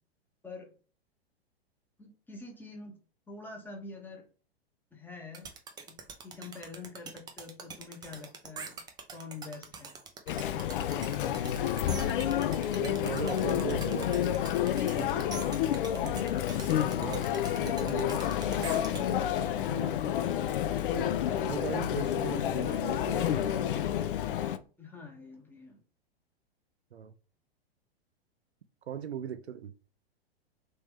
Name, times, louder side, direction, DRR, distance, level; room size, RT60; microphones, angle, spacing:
voice 1, 2.0-3.0 3.3-4.3 4.9-5.5 5.9-6.0 6.2-8.8 9.1-9.9 15.9-16.3 24.8-25.8, left 4 dB, 5° left, 0.9 m, -46 dB
sound 1, 5.3-19.0, right 5 dB, 15° right, 0.5 m, -44 dB
Chatter, 10.3-24.6, left 10 dB, 55° left, 0.5 m, -30 dB
voice 2, 12.7-14.3 14.9-15.3 16.0-16.2 16.8-17.3 17.6-19.3 19.6-20.0 20.9-23.8 26.9-27.1 28.9-29.7, right 8 dB, 85° right, 0.5 m, -40 dB
3.2 x 2.9 x 3.5 m
figure-of-eight pair, 105°, 31 cm